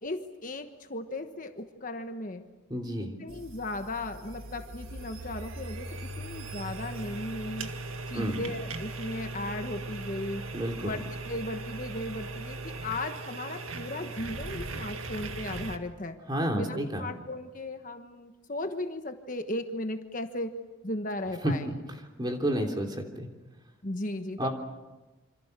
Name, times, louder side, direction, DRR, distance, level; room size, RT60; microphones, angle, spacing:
voice 1, 0.0-2.4 3.2-7.7 8.1-10.5 10.8-16.2 16.5-20.6 20.8-21.7 23.8-24.5, left 1 dB, 40° left, 6 dB, 1.3 m, -36 dB
voice 2, 2.7-3.1 8.1-8.4 10.5-10.9 16.3-17.0 21.4-21.7 22.2-23.3 24.4-24.5, equal, 20° right, 2 dB, 3.2 m, -30 dB
sound 1, 3.3-15.8, right 2 dB, 90° right, 1.9 m, -39 dB
27.0 x 26.0 x 6.7 m, 1.1 s
head